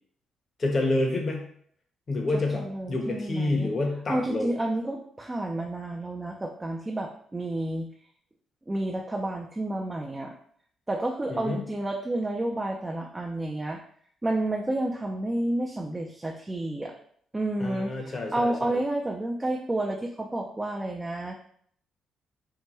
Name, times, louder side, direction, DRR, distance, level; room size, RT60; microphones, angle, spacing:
voice 1, 0.6-1.5 2.1-4.6 11.3-11.6 17.6-18.8, left 2 dB, 40° left, 2 dB, 0.9 m, -28 dB
voice 2, 2.3-3.7 4.1-7.9 8.7-10.3 10.9-13.8 14.2-16.9 17.3-21.3, right 1 dB, 15° right, 0 dB, 0.4 m, -30 dB
4.5 x 2.2 x 2.9 m, 0.62 s
cardioid pair, 90°, 0 cm